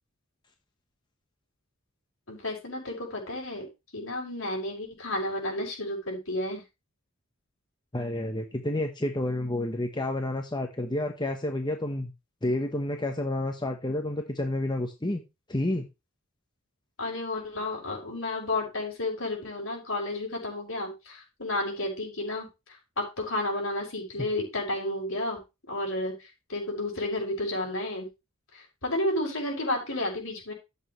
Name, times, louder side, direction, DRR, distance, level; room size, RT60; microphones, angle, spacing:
voice 1, 2.3-3.7 3.9-6.6 17.0-22.5 23.0-25.4 25.7-28.1 28.5-30.5, left 1 dB, 65° left, 0 dB, 6.1 m, -31 dB
voice 2, 7.9-12.1 12.4-15.2 15.5-15.9, left 1 dB, 20° left, 4 dB, 1.1 m, -30 dB
13.5 x 8.3 x 3.3 m, 0.25 s
head